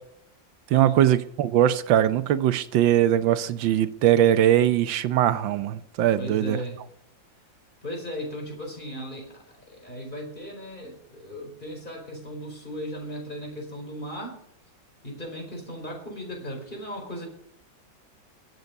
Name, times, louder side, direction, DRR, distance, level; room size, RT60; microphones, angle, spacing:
voice 1, 0.7-6.6, right 11 dB, 85° right, 1.5 m, -21 dB
voice 2, 6.2-6.8 7.8-14.4 15.0-17.3, equal, 25° left, 4.9 m, -36 dB
23.5 x 8.1 x 5.3 m
omnidirectional pair, 2.0 m